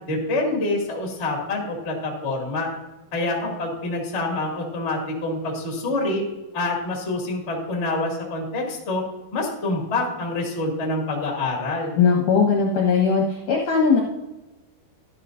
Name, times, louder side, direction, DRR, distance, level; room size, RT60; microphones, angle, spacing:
voice 1, 0.1-2.7 3.1-6.2 6.5-9.0 9.3-11.9, left 2 dB, 25° left, 0 dB, 1.5 m, -26 dB
voice 2, 12.0-14.0, left 5 dB, 65° left, -1 dB, 2.2 m, -19 dB
12.5 x 11.0 x 2.6 m, 1.1 s
omnidirectional pair, 5.1 m